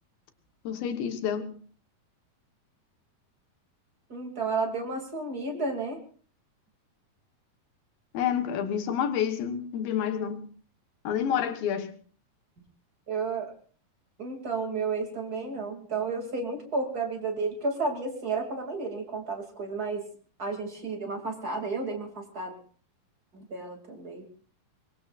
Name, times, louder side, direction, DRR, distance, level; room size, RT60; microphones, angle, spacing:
voice 1, 0.6-1.6 8.1-10.5 11.0-12.0, left 8 dB, 85° left, 3.1 m, -29 dB
voice 2, 4.1-6.0 13.1-13.5 14.2-20.1 20.4-22.6 23.3-24.3, right 4 dB, 30° right, 2.8 m, -32 dB
24.5 x 21.5 x 2.5 m
omnidirectional pair, 4.0 m